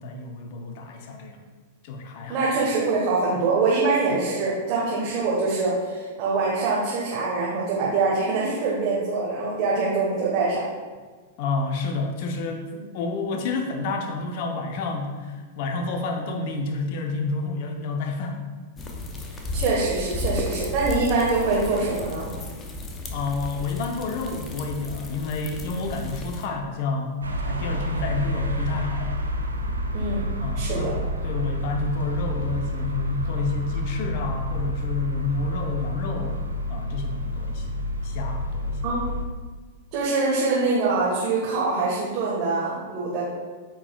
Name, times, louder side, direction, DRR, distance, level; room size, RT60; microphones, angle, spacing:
voice 1, 0.0-1.4 1.8-2.5 11.4-12.6 12.9-18.4 23.1-27.2 27.5-29.1 30.4-36.4 36.7-38.8, left 3 dB, 50° left, 3 dB, 0.8 m, -29 dB
voice 2, 2.3-10.6 12.7-12.8 19.5-22.3 29.9-30.2 30.5-31.0 38.8-39.1 39.9-43.2, right 3 dB, 40° right, -6 dB, 1.4 m, -24 dB
sound 1, 18.8-26.5, left 2 dB, 25° left, 0.8 m, -33 dB
sound 2, 27.2-39.2, left 1 dB, 80° right, 0.6 m, -29 dB
8.6 x 4.7 x 2.4 m, 1.4 s
figure-of-eight pair, 100°, 0 cm